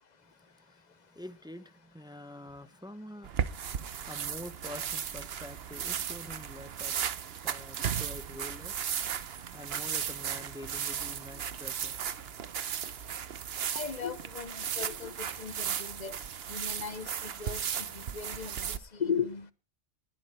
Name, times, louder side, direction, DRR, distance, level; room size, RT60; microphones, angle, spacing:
voice 1, 0.2-3.3 3.6-8.8 9.5-12.0 12.3-12.4, left 1 dB, 5° right, 0.6 m, -47 dB
sound 1, 3.2-18.8, right 8 dB, 60° right, 1.0 m, -36 dB
voice 2, 13.7-16.2 16.5-19.5, left 6 dB, 40° left, 0.9 m, -37 dB
19.5 x 11.5 x 3.2 m
omnidirectional pair, 1.2 m